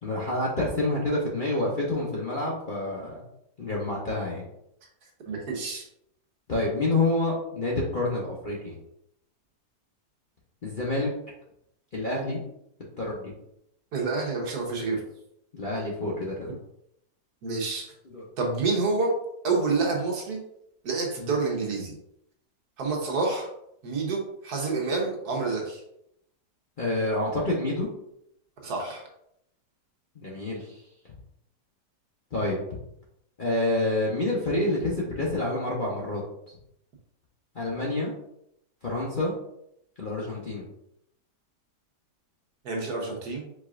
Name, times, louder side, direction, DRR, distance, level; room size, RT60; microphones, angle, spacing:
voice 1, 0.0-3.2 3.6-4.4 6.5-8.8 10.6-11.1 11.9-12.4 13.0-13.3 15.5-16.5 18.1-18.2 26.8-27.9 30.1-30.8 32.3-32.6 33.4-36.2 37.5-38.1 38.8-39.3 40.0-40.6, left 2 dB, 40° left, -4 dB, 0.8 m, -28 dB
voice 2, 5.3-5.9 13.9-15.0 17.4-17.9 18.4-19.1 19.4-20.4 20.8-21.9 22.8-23.5 23.8-25.8 28.6-29.0 42.6-43.5, right 3 dB, 70° right, 0 dB, 1.5 m, -28 dB
4.8 x 4.2 x 2.5 m, 0.78 s
omnidirectional pair, 1.8 m